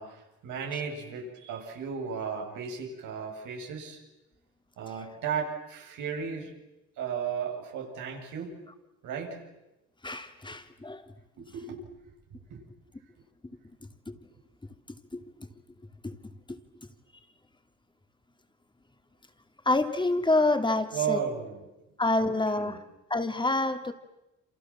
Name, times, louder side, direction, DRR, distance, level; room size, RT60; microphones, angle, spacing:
voice 1, 0.0-4.0 4.8-6.5 7.0-8.6 9.0-9.4 11.4-11.8 12.5-12.6 20.9-21.7 22.2-22.8, right 7 dB, 85° right, 1 dB, 7.5 m, -35 dB
voice 2, 10.0-11.0 14.1-14.2 15.1-15.2 16.0-16.2 16.5-16.6 19.6-21.2 22.0-22.8 23.1-23.9, left 2 dB, 15° left, 7 dB, 2.8 m, -27 dB
28.5 x 27.5 x 7.4 m, 0.97 s
cardioid pair, 90°, 30 cm